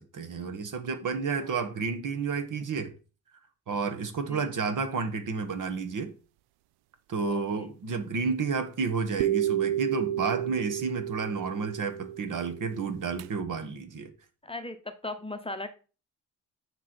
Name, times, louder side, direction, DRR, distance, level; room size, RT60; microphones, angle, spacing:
voice 1, 0.0-2.9 3.7-6.1 7.1-14.1, right 5 dB, 50° right, 1.3 m, -31 dB
voice 2, 7.3-7.7 14.4-15.7, left 2 dB, 15° left, 0.9 m, -38 dB
sound 1, 9.2-13.3, right 12 dB, 70° right, 0.5 m, -31 dB
9.3 x 3.1 x 4.3 m
hypercardioid pair, 50°, 41 cm